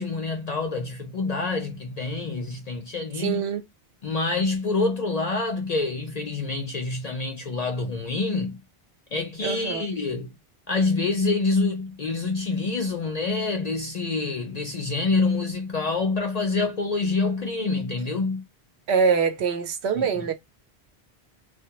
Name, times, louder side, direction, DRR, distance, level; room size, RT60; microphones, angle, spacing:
voice 1, 0.0-3.4 4.0-8.6 9.1-10.3 10.7-18.4 20.0-20.3, left 3 dB, 55° left, 0.4 m, -26 dB
voice 2, 3.1-3.6 9.4-9.9 18.9-20.3, right 6 dB, 80° right, 0.9 m, -24 dB
2.2 x 2.0 x 2.8 m
omnidirectional pair, 1.1 m